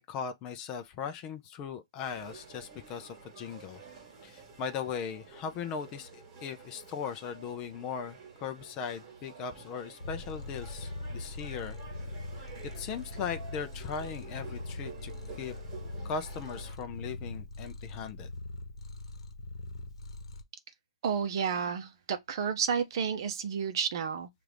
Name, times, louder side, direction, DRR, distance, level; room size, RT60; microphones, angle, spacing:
voice 1, 0.0-3.8 4.2-11.8 12.4-12.5 12.7-15.5 16.0-18.3, left 6 dB, 20° left, 0.5 m, -38 dB
sound 1, 2.0-16.8, right 5 dB, 30° right, 1.4 m, -50 dB
Purr, 10.0-20.4, left 2 dB, 70° left, 1.0 m, -42 dB
voice 2, 21.0-24.3, right 6 dB, 45° right, 0.7 m, -31 dB
5.8 x 2.5 x 3.3 m
hypercardioid pair, 160°, 3 cm